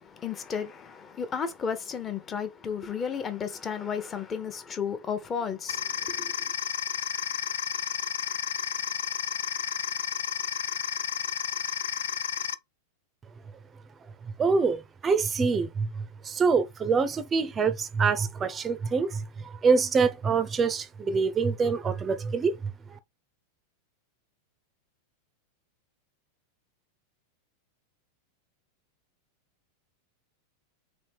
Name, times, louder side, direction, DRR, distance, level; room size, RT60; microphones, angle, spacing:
voice 1, 0.0-5.8 6.2-6.3, left 6 dB, 25° left, 0.8 m, -33 dB
sound 1, 5.7-12.5, left 9 dB, 65° left, 0.3 m, -31 dB
voice 2, 14.4-22.6, right 5 dB, 20° right, 0.5 m, -25 dB
4.1 x 2.7 x 3.4 m
figure-of-eight pair, 90°, 0 cm